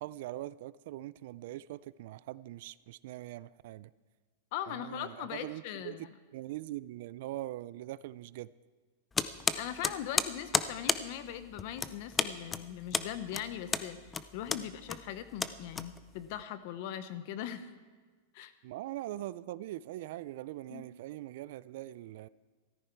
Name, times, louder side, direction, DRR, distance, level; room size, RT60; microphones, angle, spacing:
voice 1, 0.0-3.9 4.7-6.1 6.3-8.5 14.6-14.7 18.6-22.3, right 15 dB, 60° right, 19 dB, 0.3 m, -42 dB
voice 2, 4.5-6.1 9.5-14.0 14.3-17.7 18.3-18.5 20.7-20.8, left 10 dB, 50° left, 12 dB, 0.9 m, -40 dB
sound 1, 9.1-16.3, left 5 dB, 10° left, 0.4 m, -33 dB
14.0 x 13.0 x 4.6 m, 1.5 s
supercardioid pair, 155°, 0 cm